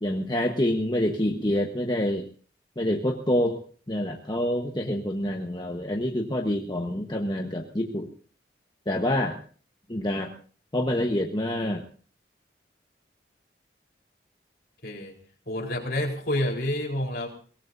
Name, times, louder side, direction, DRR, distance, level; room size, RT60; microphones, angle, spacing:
voice 1, 0.0-2.3 2.8-3.6 3.9-8.1 8.9-9.4 9.9-10.3 10.7-11.8, left 1 dB, 25° left, 1 dB, 1.2 m, -27 dB
voice 2, 14.8-15.1 15.5-17.3, left 1 dB, 55° left, 0 dB, 4.2 m, -28 dB
23.0 x 18.0 x 2.7 m, 0.43 s
head